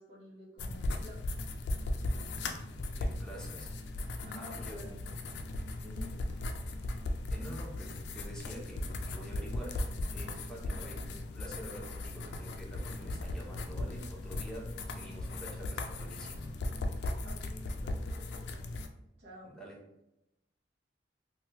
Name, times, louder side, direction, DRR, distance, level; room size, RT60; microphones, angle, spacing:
voice 1, 0.0-1.4 4.2-5.0 5.8-6.1 17.2-18.6 19.2-19.6, left 1 dB, 75° right, -5 dB, 0.8 m, -50 dB
sound 1, 0.6-18.9, left 2 dB, 70° left, 0.3 m, -37 dB
voice 2, 3.0-3.8 4.3-5.0 7.3-16.6 19.4-19.8, equal, 5° left, -3 dB, 0.6 m, -48 dB
3.0 x 2.2 x 2.8 m, 0.88 s
head